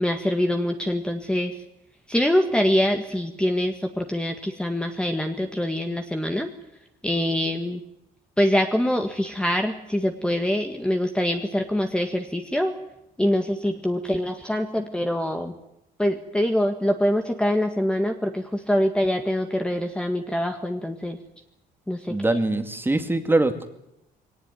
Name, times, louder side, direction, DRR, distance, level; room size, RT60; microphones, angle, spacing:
voice 1, 0.0-1.5 2.1-6.5 7.0-7.8 8.4-12.7 13.2-15.5 16.0-21.2 21.9-22.2, left 1 dB, 5° left, 5 dB, 1.8 m, -24 dB
voice 2, 22.1-23.7, right 2 dB, 10° right, 8 dB, 2.3 m, -23 dB
21.5 x 18.5 x 9.3 m, 0.83 s
cardioid pair, 110°, 17 cm